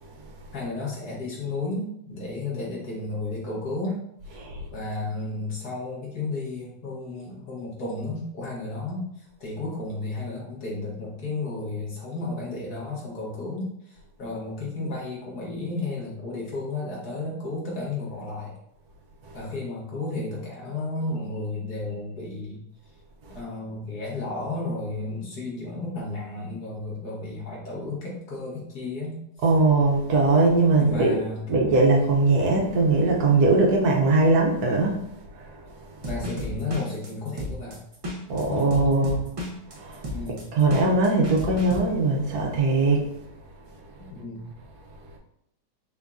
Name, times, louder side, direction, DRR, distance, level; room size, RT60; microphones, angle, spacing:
voice 1, 0.5-4.0 4.7-9.0 9.4-13.7 14.2-18.5 19.3-22.6 23.3-29.2 30.8-31.4 36.0-37.8 38.5-38.9 40.1-40.5 44.1-44.5, left 2 dB, 70° left, 1.8 m, -33 dB
voice 2, 29.4-31.2 31.5-35.0 38.3-39.2 39.8-40.0 40.5-43.1, right 3 dB, 70° right, 1.3 m, -20 dB
sound 1, 36.0-41.8, left 1 dB, 35° right, 0.6 m, -33 dB
4.4 x 2.6 x 3.5 m
omnidirectional pair, 1.7 m